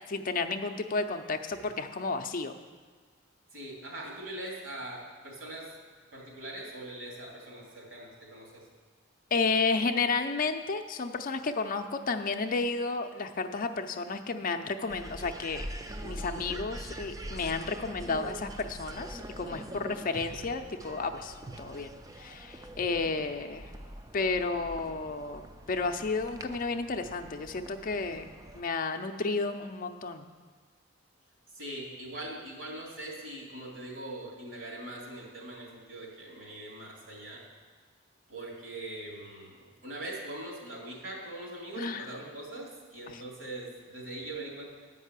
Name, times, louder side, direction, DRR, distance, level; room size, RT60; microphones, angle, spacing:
voice 1, 0.1-2.6 9.3-15.7 16.0-21.9 22.2-23.7 24.1-30.3 41.8-42.1 43.1-43.2, left 4 dB, 45° left, 7 dB, 0.5 m, -32 dB
voice 2, 3.5-5.7 6.1-8.7 19.8-20.0 31.5-37.4 38.3-44.6, right 1 dB, 70° right, -2 dB, 2.8 m, -42 dB
sound 1, 14.9-28.6, right 1 dB, 20° right, 0.4 m, -44 dB
9.8 x 5.4 x 8.1 m, 1.5 s
head